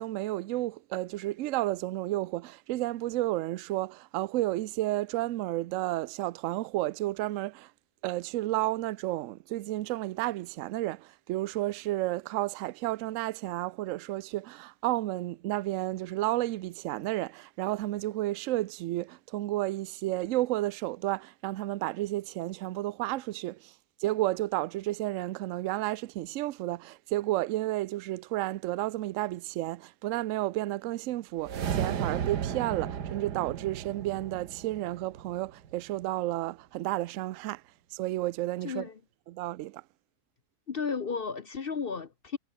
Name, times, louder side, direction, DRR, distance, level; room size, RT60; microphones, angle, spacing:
voice 1, 0.0-7.7 8.0-23.7 24.0-37.6 37.9-38.9 39.3-39.8, right 16 dB, 65° right, 0.8 m, -32 dB
sound 1, 31.4-35.8, right 8 dB, 90° right, 2.0 m, -34 dB
voice 2, 38.6-39.0 40.7-42.4, left 5 dB, 45° left, 0.9 m, -33 dB
omnidirectional pair, 1.7 m